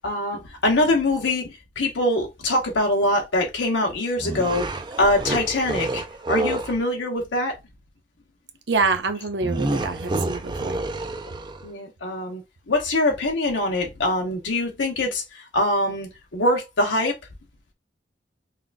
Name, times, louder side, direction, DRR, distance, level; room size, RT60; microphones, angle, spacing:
voice 1, 0.0-1.5 1.8-4.7 5.0-7.5 11.6-12.4 12.7-17.1, left 1 dB, 85° left, 1.0 m, -23 dB
sound 1, 4.2-6.8 9.4-11.7, right 2 dB, 25° right, 0.5 m, -28 dB
voice 2, 8.7-10.8, right 4 dB, 70° right, 0.7 m, -26 dB
5.6 x 2.4 x 2.5 m
head